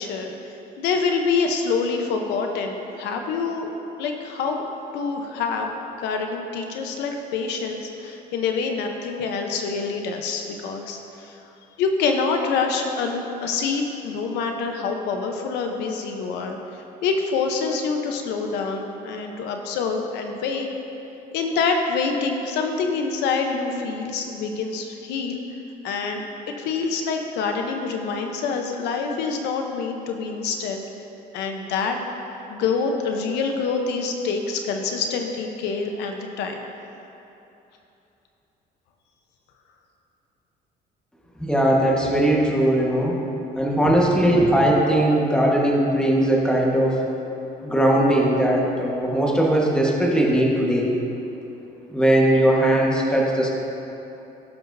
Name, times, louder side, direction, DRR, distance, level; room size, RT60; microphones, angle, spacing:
voice 1, 0.0-3.7 4.0-4.6 4.9-5.7 6.0-11.4 11.8-20.7 21.3-25.4 25.8-30.8 31.3-32.0 32.5-36.6, left 4 dB, 90° left, 3 dB, 0.9 m, -26 dB
voice 2, 41.4-43.2 43.6-47.0 47.6-50.9 51.9-53.5, right 1 dB, 5° left, -3 dB, 1.4 m, -19 dB
17.0 x 5.9 x 2.7 m, 2.9 s
cardioid pair, 110°, 17 cm